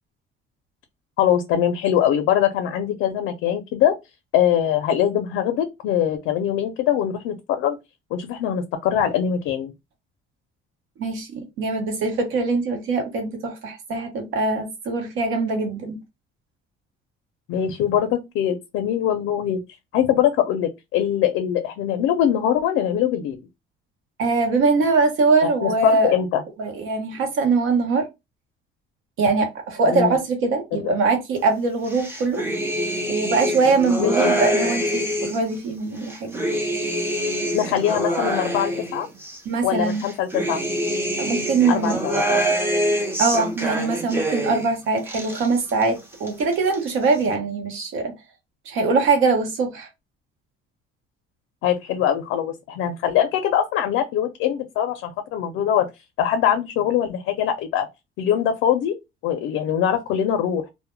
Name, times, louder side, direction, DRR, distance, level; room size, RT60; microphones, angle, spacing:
voice 1, 1.2-4.0 4.3-7.8 8.1-9.7 17.5-19.6 19.9-23.4 25.6-26.4 29.9-30.2 30.8-30.9 34.0-34.3 37.5-39.1 39.6-40.6 41.7-42.4 51.6-55.9 56.2-57.9 58.2-59.0 59.2-60.7, left 10 dB, 80° left, 0.4 m, -22 dB
voice 2, 11.0-16.0 24.2-26.1 26.6-28.1 29.2-32.4 33.1-36.4 39.4-40.1 41.2-42.0 43.2-48.1 48.7-49.9, right 3 dB, 80° right, 0.8 m, -22 dB
sound 1, 31.9-35.5 36.0-39.4 39.9-44.7 45.0-45.9 46.1-46.9, right 1 dB, 10° right, 0.5 m, -25 dB
2.1 x 2.1 x 3.0 m
cardioid pair, 155°, 21 cm